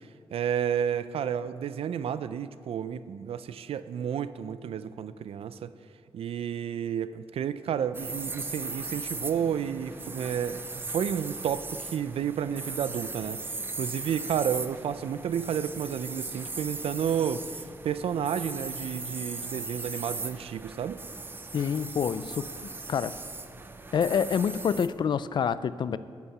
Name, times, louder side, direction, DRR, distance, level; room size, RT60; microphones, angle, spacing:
voice 1, 0.3-5.7 6.1-10.6 10.9-13.4 13.8-17.5 17.8-21.0, right 8 dB, 90° right, 14 dB, 0.4 m, -31 dB
sound 1, 7.9-24.9, right 3 dB, 20° right, 0.6 m, -38 dB
voice 2, 21.5-22.5 22.9-23.1 23.9-26.0, left 7 dB, 55° left, 15 dB, 0.3 m, -27 dB
10.5 x 7.1 x 6.6 m, 2.2 s
wide cardioid pair, 160°, 10 cm